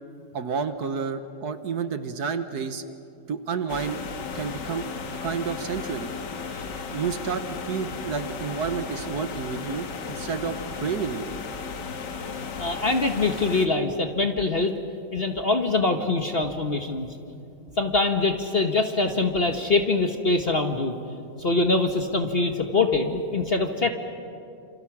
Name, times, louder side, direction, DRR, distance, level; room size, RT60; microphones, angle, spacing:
voice 1, 0.3-2.8 3.3-4.0 4.3-4.8 5.2-6.1 6.9-11.3, right 6 dB, 60° right, 9 dB, 1.5 m, -30 dB
sound 1, 3.7-13.7, left 5 dB, 70° left, 1.9 m, -35 dB
voice 2, 12.6-14.7 15.1-17.1 17.8-21.0 21.4-23.9, left 3 dB, 40° left, 5 dB, 1.1 m, -24 dB
28.0 x 27.5 x 6.1 m, 2.6 s
omnidirectional pair, 2.0 m